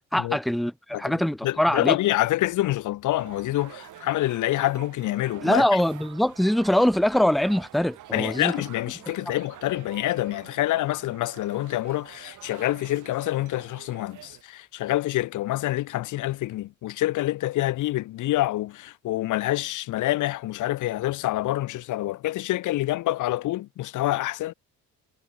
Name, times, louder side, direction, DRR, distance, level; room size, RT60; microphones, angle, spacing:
voice 1, 0.1-2.0 5.4-8.5, left 1 dB, ahead, 1.0 m, -23 dB
voice 2, 1.4-5.6 8.1-24.5, left 16 dB, 80° left, 1.0 m, -27 dB
sound 1, 3.2-14.4, right 13 dB, 80° right, 5.3 m, -47 dB
cardioid pair, 90°, 30 cm